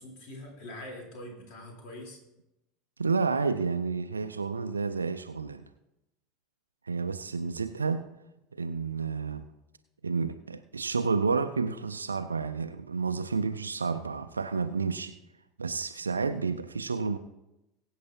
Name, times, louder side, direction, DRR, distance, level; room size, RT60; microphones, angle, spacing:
voice 1, 0.0-2.2, left 1 dB, 55° left, 0 dB, 3.8 m, -43 dB
voice 2, 3.0-5.7 6.9-8.1 8.5-9.5 10.0-15.2 15.6-17.2, right 4 dB, 80° right, 9 dB, 0.4 m, -30 dB
22.0 x 8.2 x 2.9 m, 0.93 s
figure-of-eight pair, 75°, 0 cm